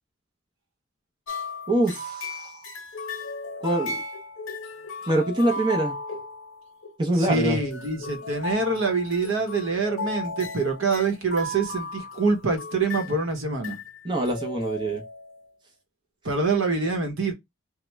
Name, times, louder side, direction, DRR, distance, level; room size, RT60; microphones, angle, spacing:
sound 1, 1.3-6.9 7.2-13.2 13.6-14.0 14.2-15.5, left 2 dB, 70° left, 0.7 m, -35 dB
voice 1, 1.7-2.6 3.6-4.0 5.1-6.0 7.0-7.6 14.0-15.0, right 1 dB, 20° right, 0.5 m, -24 dB
voice 2, 7.2-13.8 16.2-17.3, right 3 dB, 70° right, 0.9 m, -25 dB
2.9 x 2.1 x 3.3 m
head